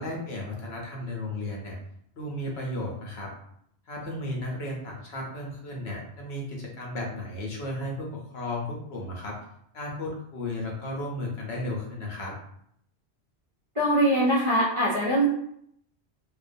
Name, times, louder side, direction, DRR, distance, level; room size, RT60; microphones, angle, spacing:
voice 1, 0.0-1.8 2.1-3.3 3.9-9.4 9.7-12.3, left 1 dB, 75° left, -2 dB, 0.9 m, -34 dB
voice 2, 13.7-15.2, right 1 dB, 40° right, -7 dB, 0.5 m, -22 dB
2.4 x 2.2 x 2.5 m, 0.71 s
omnidirectional pair, 1.1 m